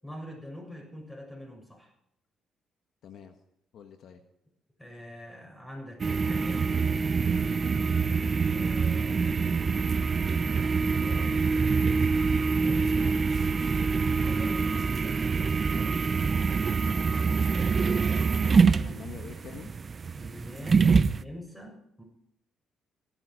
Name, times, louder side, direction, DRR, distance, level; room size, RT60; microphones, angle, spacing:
voice 1, 0.0-1.9 4.8-6.7 8.5-9.9 10.8-11.5 12.4-13.2 14.0-14.7 15.7-16.2 18.6-19.1 20.1-22.0, equal, 10° left, 1 dB, 7.3 m, -44 dB
voice 2, 3.0-3.4 3.7-4.2 18.3-18.5 18.8-19.7 20.7-21.0, left 8 dB, 70° left, 6 dB, 1.4 m, -46 dB
sound 1, 6.0-21.2, right 5 dB, 40° right, 0.6 m, -25 dB
16.0 x 12.5 x 5.0 m, 0.75 s
cardioid pair, 90°, 0 cm